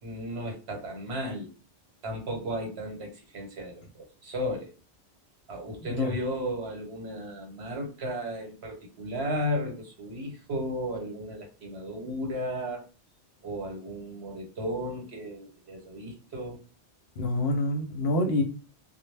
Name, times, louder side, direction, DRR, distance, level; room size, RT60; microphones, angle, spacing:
voice 1, 0.0-1.5 2.0-4.7 5.5-12.8 13.4-16.6, equal, 65° right, 2 dB, 1.0 m, -34 dB
voice 2, 17.2-18.4, left 1 dB, 65° left, 3 dB, 0.7 m, -27 dB
2.1 x 2.0 x 3.1 m, 0.35 s
omnidirectional pair, 1.2 m